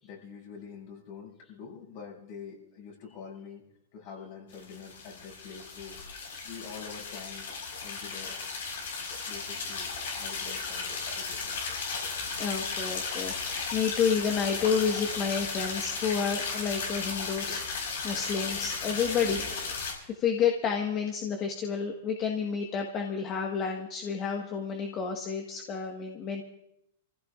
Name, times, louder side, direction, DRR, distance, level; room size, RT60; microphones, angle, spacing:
voice 1, 0.0-3.6 3.9-6.1 6.4-7.4 7.8-8.3 9.2-11.5 19.2-19.4, left 6 dB, 55° left, -2 dB, 6.4 m, -46 dB
sound 1, 4.5-19.9, left 4 dB, 80° left, 4.7 m, -35 dB
voice 2, 12.4-19.6 20.1-26.4, left 6 dB, 35° left, 2 dB, 1.5 m, -30 dB
26.5 x 15.5 x 2.5 m, 0.80 s
hypercardioid pair, 125°, 0 cm